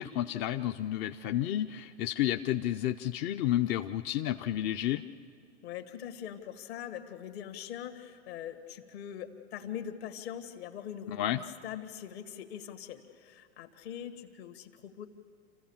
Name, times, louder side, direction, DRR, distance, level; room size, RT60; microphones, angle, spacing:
voice 1, 0.0-5.0 11.1-11.4, left 12 dB, 35° left, 7 dB, 0.5 m, -31 dB
voice 2, 5.6-15.1, left 9 dB, 65° left, 6 dB, 1.9 m, -42 dB
27.5 x 15.0 x 7.2 m, 2.3 s
hypercardioid pair, 115°, 34 cm